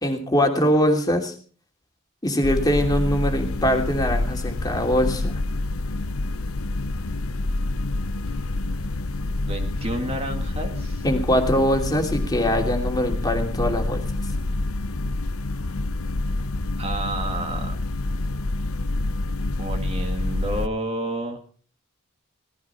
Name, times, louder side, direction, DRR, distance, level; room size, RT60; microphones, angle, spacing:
voice 1, 0.0-1.3 2.2-5.3 11.0-14.0, equal, 20° left, 3 dB, 2.9 m, -22 dB
sound 1, 2.4-20.7, left 2 dB, 90° left, 0.9 m, -27 dB
voice 2, 9.5-11.1 16.8-17.7 19.6-21.4, right 1 dB, 30° right, 4 dB, 2.1 m, -30 dB
18.0 x 15.5 x 4.4 m, 0.43 s
head